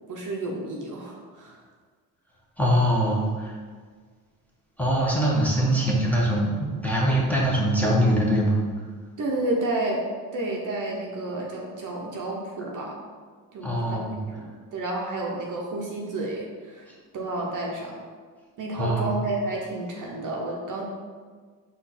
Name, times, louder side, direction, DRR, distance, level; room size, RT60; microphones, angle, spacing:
voice 1, 0.1-1.6 9.2-10.0 10.3-12.9 13.5-14.0 14.3-18.0 18.6-20.8, right 2 dB, 50° right, -1 dB, 0.9 m, -31 dB
voice 2, 2.6-3.5 4.8-8.6 13.6-14.2 16.9-17.0 18.8-19.1, equal, 5° left, -5 dB, 1.2 m, -23 dB
4.3 x 2.7 x 4.2 m, 1.5 s
supercardioid pair, 70°, 40 cm